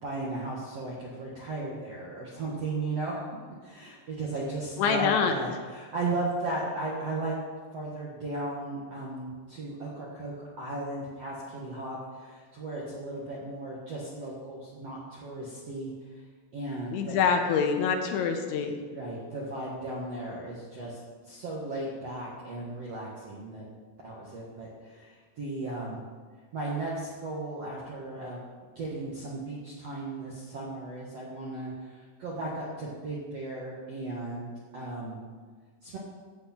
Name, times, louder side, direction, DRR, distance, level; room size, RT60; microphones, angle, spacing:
voice 1, 0.0-7.3 7.7-16.2 16.5-17.2 18.9-23.6 24.0-26.0 26.5-28.4 28.7-35.2 35.8-36.0, right 2 dB, 60° right, -5 dB, 1.6 m, -36 dB
voice 2, 4.8-5.3 16.9-18.8, left 6 dB, 80° left, 4 dB, 3.3 m, -25 dB
14.5 x 8.6 x 4.4 m, 1.5 s
omnidirectional pair, 5.4 m